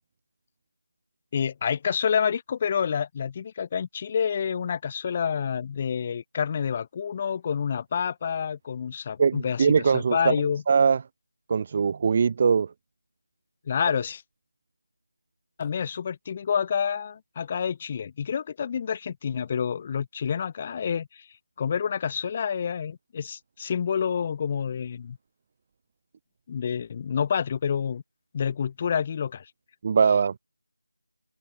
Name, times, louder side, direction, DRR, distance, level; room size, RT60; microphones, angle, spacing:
voice 1, 1.3-10.6 13.7-14.2 15.6-21.3 21.6-25.2 26.5-28.0 28.3-29.5, left 7 dB, 15° left, 4.6 m, -28 dB
voice 2, 9.2-10.3 10.7-11.0 11.5-12.7 29.8-30.3, right 6 dB, 20° right, 1.1 m, -21 dB
figure-of-eight pair, 175°, 0 cm